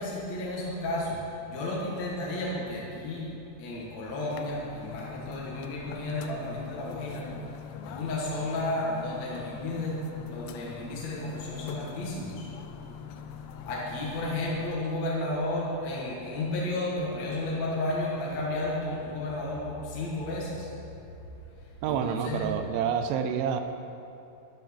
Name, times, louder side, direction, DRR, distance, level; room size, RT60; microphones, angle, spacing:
voice 1, 0.0-3.3 3.6-7.3 7.8-12.5 13.6-20.7 21.8-22.5, left 2 dB, 55° left, -5 dB, 2.0 m, -32 dB
sound 1, 4.3-14.8, left 7 dB, 80° left, 2.5 m, -43 dB
voice 2, 21.8-23.6, right 7 dB, 80° right, 8 dB, 3.0 m, -28 dB
12.0 x 10.0 x 7.0 m, 2.9 s
omnidirectional pair, 5.6 m